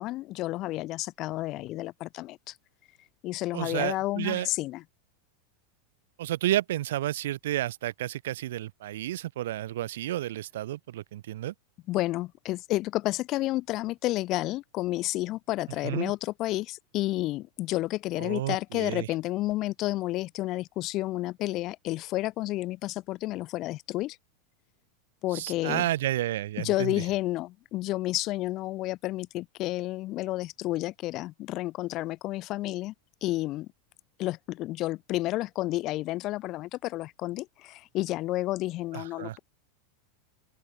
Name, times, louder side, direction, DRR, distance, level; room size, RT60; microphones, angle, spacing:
voice 1, 0.0-2.6 3.2-4.8 11.9-24.2 25.2-25.9 26.6-32.9 33.2-33.7 34.2-39.4, left 17 dB, 35° left, 2.1 m, -31 dB
voice 2, 3.5-4.5 6.2-11.5 15.8-16.1 18.2-19.1 25.3-27.0 38.9-39.4, right 14 dB, 75° right, 2.4 m, -31 dB
open air
supercardioid pair, 165°, 0 cm